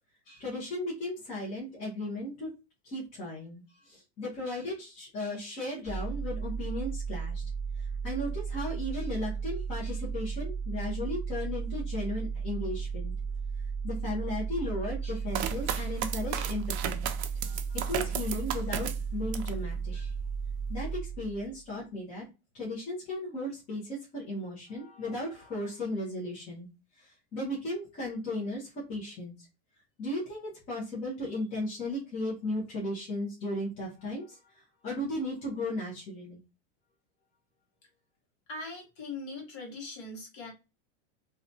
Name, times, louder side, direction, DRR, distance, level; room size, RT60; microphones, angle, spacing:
voice 1, 0.3-2.5 2.8-7.4 7.8-13.1 13.8-17.1 17.3-20.1 20.7-22.2 22.5-26.7 27.0-29.5 30.0-36.4, left 1 dB, 20° left, -6 dB, 0.7 m, -36 dB
sound 1, 5.8-21.6, right 5 dB, ahead, 1.3 m, -35 dB
sound 2, 15.3-19.6 20.1-20.7, right 10 dB, 75° right, 0.5 m, -35 dB
voice 2, 38.5-40.5, left 3 dB, 45° left, 0 dB, 1.2 m, -40 dB
2.7 x 2.2 x 2.6 m, 0.28 s
supercardioid pair, 170°, 34 cm